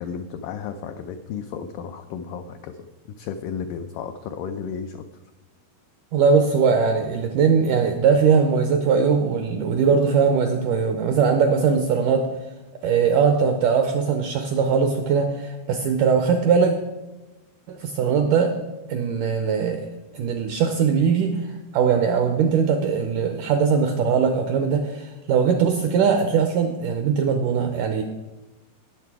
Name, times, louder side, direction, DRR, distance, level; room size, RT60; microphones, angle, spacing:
voice 1, 0.0-5.0, left 7 dB, 90° left, 7 dB, 1.9 m, -33 dB
voice 2, 6.1-12.3 12.8-16.7 17.7-18.6 18.9-19.9 20.1-28.0, right 6 dB, 80° right, 6 dB, 1.8 m, -20 dB
17.0 x 6.7 x 4.7 m, 1.1 s
omnidirectional pair, 4.5 m